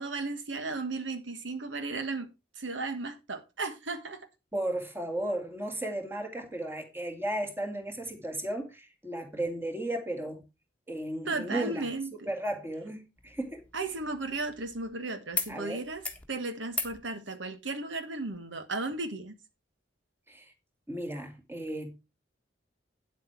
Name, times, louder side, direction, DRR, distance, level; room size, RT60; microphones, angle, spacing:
voice 1, 0.0-4.3 11.2-12.3 13.7-19.4, right 3 dB, 80° right, 1.4 m, -35 dB
voice 2, 4.5-10.4 10.9-11.9 12.3-13.6 15.5-15.8 20.3-20.5 20.9-22.0, right 1 dB, 15° right, 2.1 m, -34 dB
sound 1, 13.2-14.9 15.3-15.5 15.8-16.3 16.7-17.0 18.3-18.4, left 4 dB, 10° left, 1.4 m, -38 dB
9.3 x 7.9 x 4.5 m
head